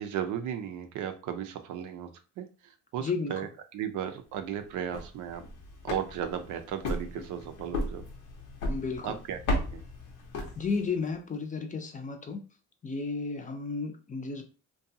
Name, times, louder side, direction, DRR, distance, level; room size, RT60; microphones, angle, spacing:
voice 1, 0.0-2.1 2.4-5.4 5.8-8.1 9.0-9.8, right 9 dB, 85° right, 8 dB, 0.5 m, -35 dB
voice 2, 3.0-3.3 8.7-9.2 10.6-12.4 12.8-14.4, left 4 dB, 25° left, 4 dB, 0.5 m, -33 dB
sound 1, 4.7-11.0, left 1 dB, 85° left, 0.8 m, -35 dB
2.6 x 2.3 x 2.7 m, 0.35 s
cardioid pair, 90°, 30 cm